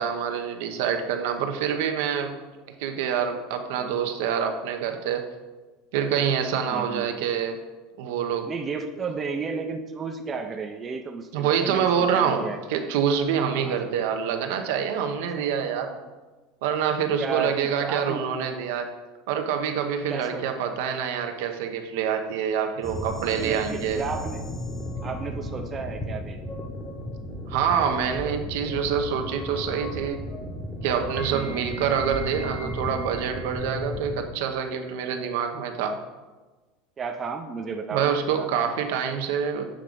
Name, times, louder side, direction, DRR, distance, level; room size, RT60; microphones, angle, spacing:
voice 1, 0.0-2.4 2.8-5.2 5.9-7.6 8.0-8.5 11.3-16.0 16.6-18.9 19.3-24.0 27.5-30.3 30.8-36.0 37.9-39.7, right 7 dB, 75° right, 5 dB, 0.8 m, -26 dB
voice 2, 6.7-7.1 8.5-11.9 12.1-12.6 13.5-13.8 15.4-15.5 17.2-18.3 20.1-20.4 23.4-24.4 25.0-26.5 31.3-31.9 37.0-38.5, right 5 dB, 20° right, 5 dB, 0.5 m, -33 dB
sound 1, 22.8-34.2, left 1 dB, 15° left, 1.0 m, -34 dB
7.5 x 3.6 x 5.1 m, 1.2 s
supercardioid pair, 145°, 0 cm